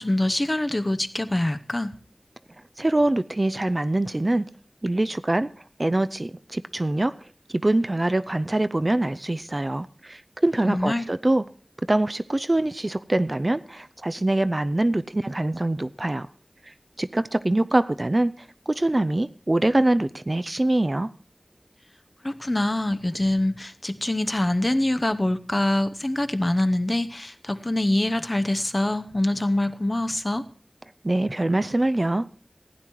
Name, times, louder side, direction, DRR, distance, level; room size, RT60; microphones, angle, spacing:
voice 1, 0.0-1.9 10.6-11.1 22.2-30.4, left 1 dB, 40° left, 11 dB, 0.8 m, -24 dB
voice 2, 2.8-4.4 4.8-5.5 5.8-7.1 7.5-11.4 11.9-16.3 17.0-18.3 18.7-21.1 31.0-32.3, right 1 dB, 50° right, 13 dB, 0.5 m, -24 dB
15.5 x 9.4 x 4.6 m, 0.43 s
wide cardioid pair, 40°, 0 cm